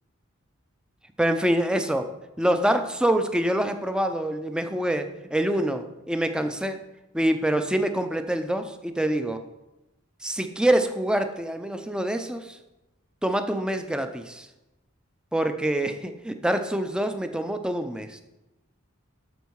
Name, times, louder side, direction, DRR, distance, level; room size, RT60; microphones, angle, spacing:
voice 1, 1.2-6.8 7.1-9.4 10.2-12.6 13.2-14.5 15.3-18.2, right 1 dB, 5° right, 8 dB, 0.5 m, -26 dB
12.5 x 4.5 x 4.7 m, 1.0 s
head